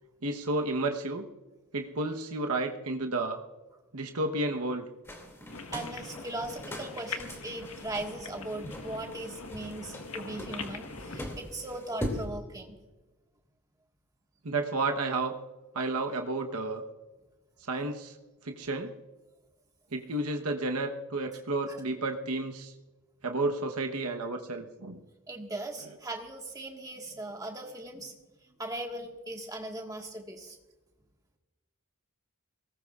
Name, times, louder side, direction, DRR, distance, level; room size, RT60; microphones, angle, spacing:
voice 1, 0.2-1.3 1.7-3.4 3.9-4.8 14.4-15.3 15.7-16.8 17.6-18.1 18.4-18.9 19.9-22.7 23.2-25.0, right 2 dB, 85° right, 3 dB, 1.1 m, -31 dB
sound 1, 5.1-12.3, equal, 10° left, 2.4 m, -41 dB
sound 2, 5.5-11.2, left 4 dB, 75° left, 1.5 m, -42 dB
voice 2, 5.7-12.8 21.7-21.8 25.3-28.1 28.6-30.6, right 1 dB, 15° right, 2 dB, 1.6 m, -39 dB
23.0 x 18.5 x 2.4 m, 1.2 s
head